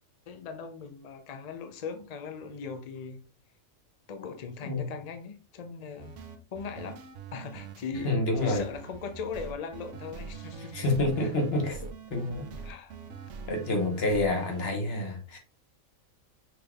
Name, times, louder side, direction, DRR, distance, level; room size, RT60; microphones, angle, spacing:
voice 1, 0.3-3.2 4.1-6.2 6.5-7.0 7.3-10.9 11.2-11.3 12.6-13.0, left 5 dB, 65° left, 0.4 m, -39 dB
sound 1, 6.0-14.6, right 5 dB, 65° right, 0.9 m, -43 dB
voice 2, 8.0-8.6 10.7-11.8 12.1-12.5 13.5-15.4, left 2 dB, 50° left, 1.3 m, -28 dB
5.9 x 3.4 x 2.3 m
omnidirectional pair, 1.5 m